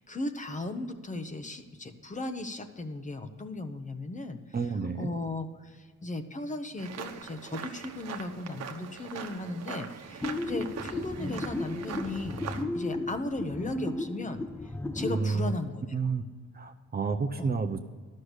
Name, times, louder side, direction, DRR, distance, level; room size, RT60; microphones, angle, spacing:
voice 1, 0.0-4.4 5.0-12.4 12.7-16.0 17.4-17.6, left 2 dB, 25° left, 8 dB, 1.0 m, -36 dB
voice 2, 4.5-5.1 15.1-15.5 15.9-16.2 16.5-17.8, right 5 dB, 30° right, 7 dB, 0.7 m, -30 dB
sound 1, 6.8-12.6, right 7 dB, 60° right, 1.1 m, -41 dB
sound 2, 10.2-15.3, left 2 dB, 5° left, 0.5 m, -34 dB
11.5 x 6.5 x 8.1 m, 1.5 s
cardioid pair, 90°, 30 cm